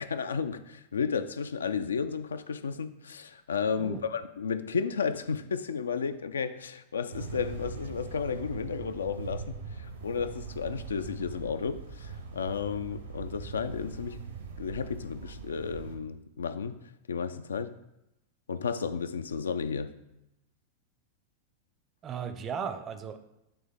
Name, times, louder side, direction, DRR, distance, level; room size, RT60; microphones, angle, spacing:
voice 1, 0.0-14.2 14.6-16.7 17.1-17.7 18.5-19.9, left 6 dB, 70° left, 11 dB, 0.3 m, -33 dB
voice 2, 3.8-4.1 22.0-23.2, right 7 dB, 25° right, 9 dB, 0.5 m, -36 dB
sound 1, 7.1-16.0, right 4 dB, 70° right, 0.9 m, -41 dB
8.8 x 3.1 x 3.5 m, 0.88 s
figure-of-eight pair, 90°, 0 cm